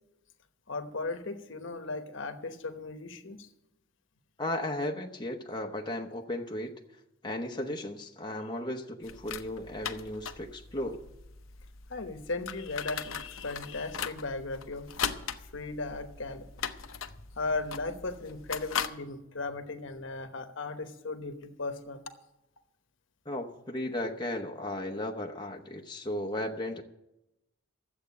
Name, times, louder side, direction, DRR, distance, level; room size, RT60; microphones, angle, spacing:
voice 1, 0.7-3.5 11.9-14.9 15.5-16.5 17.4-22.0, left 3 dB, 65° left, 1.1 m, -36 dB
voice 2, 4.4-6.7 7.2-11.0 23.3-26.8, left 1 dB, 20° left, 0.9 m, -35 dB
sound 1, 9.0-18.9, left 7 dB, 85° left, 0.8 m, -39 dB
13.0 x 8.0 x 8.3 m
head